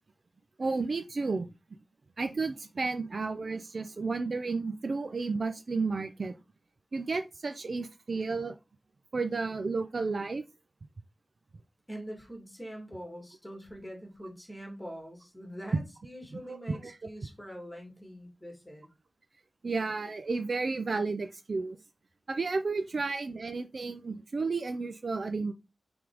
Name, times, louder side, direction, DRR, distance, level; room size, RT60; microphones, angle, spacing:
voice 1, 0.6-1.5 2.2-6.3 6.9-8.5 9.1-10.4 16.3-17.0 19.6-21.8 22.3-25.5, right 4 dB, 50° right, 8 dB, 0.5 m, -32 dB
voice 2, 11.9-18.9, equal, 5° left, 1 dB, 2.4 m, -44 dB
6.0 x 3.5 x 4.9 m, 0.26 s
wide cardioid pair, 105°, 0 cm